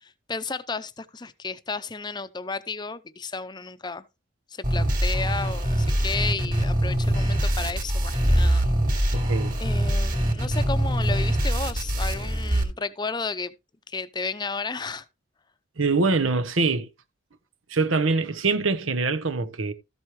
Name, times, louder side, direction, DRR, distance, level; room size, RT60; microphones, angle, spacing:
voice 1, 0.0-4.0 4.5-9.2 9.6-13.5 13.9-15.0, left 4 dB, 20° left, 0.6 m, -33 dB
sound 1, 4.6-12.6, equal, 45° right, 3.1 m, -23 dB
voice 2, 9.1-9.6 15.8-16.9 17.7-19.7, right 3 dB, 90° right, 1.0 m, -24 dB
13.5 x 7.9 x 3.1 m
head